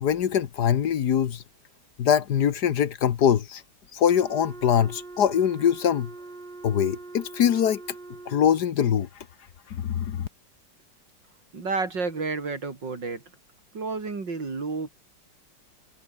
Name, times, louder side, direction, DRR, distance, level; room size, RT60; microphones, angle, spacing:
voice 1, 0.0-1.4 2.0-3.6 3.9-6.1 6.6-7.8 8.3-9.1 9.7-10.3, left 9 dB, 65° left, 1.6 m, -23 dB
Wind instrument woodwind instrument, 4.1-8.8, right 3 dB, 30° right, 2.5 m, -43 dB
voice 2, 11.5-13.2 13.7-14.9, right 4 dB, 75° right, 4.5 m, -30 dB
omnidirectional pair, 2.0 m